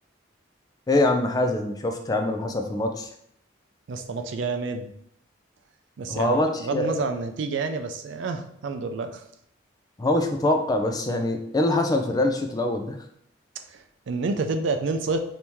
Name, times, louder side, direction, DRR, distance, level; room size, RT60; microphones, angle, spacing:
voice 1, 0.9-3.1 6.1-7.1 10.0-13.0, left 2 dB, 20° left, 5 dB, 0.3 m, -24 dB
voice 2, 3.9-4.9 6.0-9.2 13.7-15.2, right 3 dB, 70° right, 7 dB, 0.4 m, -29 dB
3.0 x 2.7 x 3.4 m, 0.72 s
head